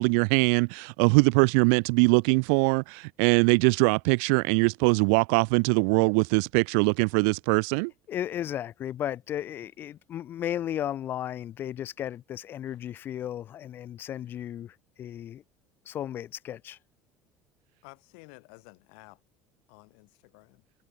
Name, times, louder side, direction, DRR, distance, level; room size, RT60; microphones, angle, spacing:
voice 1, 0.0-7.9, right 40 dB or more, 80° right, 0.3 m, -22 dB
voice 2, 8.1-15.4 15.9-16.8, left 11 dB, 30° left, 0.7 m, -34 dB
voice 3, 17.8-19.2 19.7-20.6, left 40 dB or more, 85° left, 2.0 m, -52 dB
cardioid pair, 175°, 7 cm